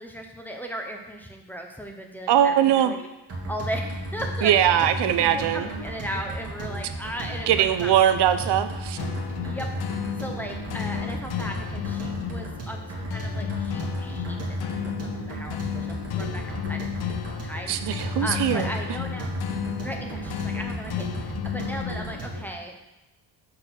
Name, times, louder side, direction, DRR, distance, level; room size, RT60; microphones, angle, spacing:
voice 1, 0.0-3.1 3.5-4.5 5.2-7.9 9.4-9.7 10.0-16.9 17.4-19.3 19.8-22.8, equal, 5° left, 2 dB, 0.7 m, -37 dB
voice 2, 2.3-2.9 4.4-5.7 7.5-9.0 17.7-18.7, right 10 dB, 80° right, 11 dB, 0.6 m, -21 dB
sound 1, 3.3-22.5, right 1 dB, 35° right, 1.9 m, -34 dB
sound 2, 9.0-22.5, left 11 dB, 65° left, 0.7 m, -33 dB
7.6 x 4.2 x 6.2 m, 0.98 s
wide cardioid pair, 175°, 40 cm